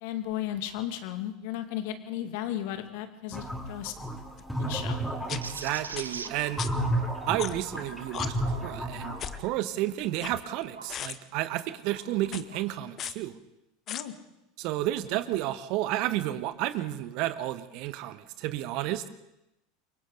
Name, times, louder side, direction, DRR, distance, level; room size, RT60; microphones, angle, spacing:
voice 1, 0.0-3.9 4.6-5.0 13.9-14.1, left 12 dB, 60° left, 7 dB, 2.3 m, -35 dB
sound 1, 3.3-9.4, right 1 dB, ahead, 5.6 m, -32 dB
sound 2, 4.4-4.5 5.3-5.4 6.0-6.1 6.6-6.7 7.4-7.7 8.1-8.3 9.2-9.4 10.0-10.6 10.9-11.2 12.2-12.4 13.0-13.1 13.9-14.0, left 10 dB, 40° left, 1.1 m, -35 dB
voice 2, 5.3-6.7 7.3-13.3 14.6-19.0, right 14 dB, 55° right, 12 dB, 1.3 m, -31 dB
sound 3, 5.4-11.0 11.5-12.7, right 4 dB, 90° right, 1.1 m, -45 dB
29.0 x 24.0 x 4.0 m, 0.90 s
figure-of-eight pair, 80°, 0 cm